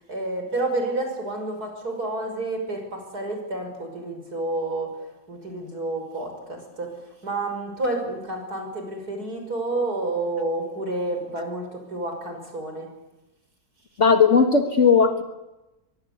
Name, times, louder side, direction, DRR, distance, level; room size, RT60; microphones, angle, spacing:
voice 1, 0.1-4.9 5.3-7.0 7.2-12.9, right 2 dB, 60° right, 4 dB, 6.5 m, -29 dB
voice 2, 14.0-15.2, left 5 dB, 45° left, 6 dB, 1.9 m, -17 dB
24.0 x 21.5 x 8.4 m, 1.0 s
omnidirectional pair, 1.9 m